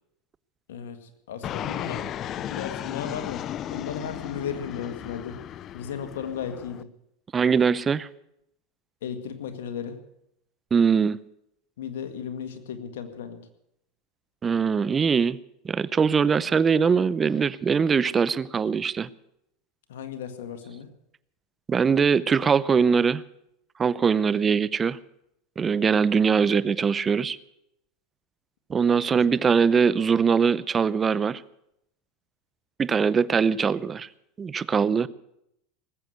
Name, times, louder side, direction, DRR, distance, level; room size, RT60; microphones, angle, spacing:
voice 1, 0.7-2.0 2.4-3.4 3.7-5.3 5.7-6.9 9.0-10.0 11.8-13.4 19.9-20.9 29.1-29.3, left 7 dB, 85° left, 1.9 m, -35 dB
Fixed-wing aircraft airplane, 1.4-6.8, left 11 dB, 40° left, 0.5 m, -35 dB
voice 2, 7.3-8.1 10.7-11.2 14.4-15.4 15.6-19.1 21.7-23.2 23.8-25.0 25.6-27.4 28.7-31.4 32.8-34.1 34.4-35.1, right 6 dB, 25° right, 0.6 m, -22 dB
19.0 x 8.0 x 8.0 m
supercardioid pair, 110°, 0 cm